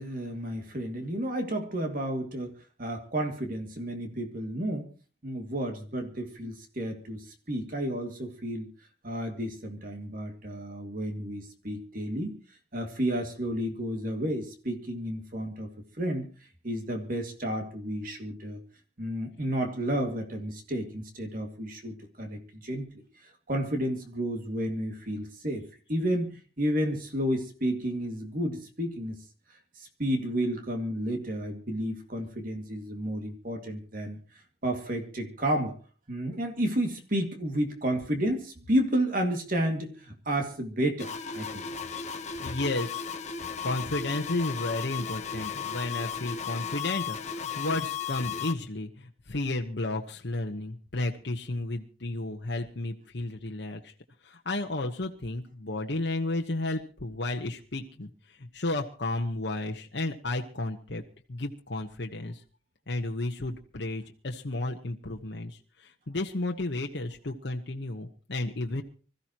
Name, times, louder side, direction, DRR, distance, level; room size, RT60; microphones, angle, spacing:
voice 1, 0.0-2.5 2.8-4.9 5.2-8.7 9.0-12.4 12.7-15.7 16.0-16.3 16.6-18.6 19.0-22.9 23.2-29.2 29.8-34.2 34.6-35.7 36.1-41.7, right 1 dB, 50° right, 4 dB, 2.2 m, -31 dB
sound 1, 41.0-48.5, left 7 dB, 40° left, 1.2 m, -35 dB
voice 2, 42.4-43.1 43.6-53.9 54.2-61.0 61.3-62.4 62.9-68.8, left 2 dB, 65° left, 2 dB, 1.2 m, -33 dB
25.5 x 14.5 x 3.0 m, 0.36 s
head